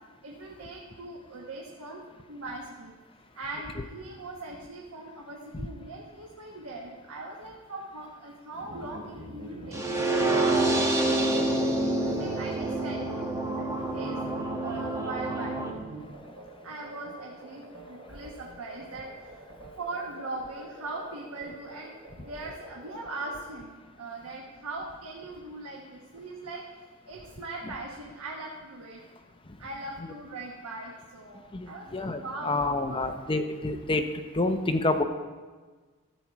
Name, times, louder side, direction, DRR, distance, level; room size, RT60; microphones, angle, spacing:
voice 1, 0.2-2.9 3.3-11.1 11.8-14.2 14.6-15.5 16.6-19.5 19.8-21.9 22.3-26.6 27.1-29.0 29.6-33.1, right 2 dB, 80° right, -1 dB, 1.1 m, -40 dB
sound 1, 8.6-23.4, right 1 dB, 65° right, 2.5 m, -45 dB
sound 2, 9.7-15.7, right 2 dB, 15° right, 1.0 m, -27 dB
voice 2, 31.5-34.0 34.3-35.0, left 2 dB, 25° left, 6 dB, 0.6 m, -28 dB
13.5 x 7.4 x 4.5 m, 1.4 s
head